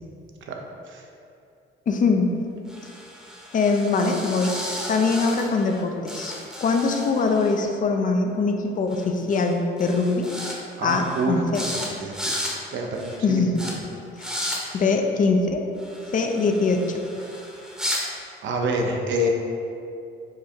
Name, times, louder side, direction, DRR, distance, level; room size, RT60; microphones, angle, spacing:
voice 1, 1.9-2.4 3.5-4.6 4.9-6.3 6.6-10.3 10.8-11.7 13.2-13.7 14.2-14.3 14.7-15.6 16.1-17.0, left 4 dB, 40° left, 4 dB, 0.4 m, -22 dB
sound 1, 2.7-5.8 6.1-7.5 8.9-9.0 9.3-9.5 9.8-10.6 10.9-11.2 11.5-11.9 12.1-12.5 12.9-13.2 13.6-13.7 14.2-14.6 15.8-18.0, equal, 5° right, 0.8 m, -34 dB
voice 2, 10.8-12.2 12.7-13.7 18.4-19.3, right 1 dB, 70° right, 2 dB, 0.6 m, -27 dB
4.7 x 2.3 x 4.3 m, 2.6 s
cardioid pair, 90°, 20 cm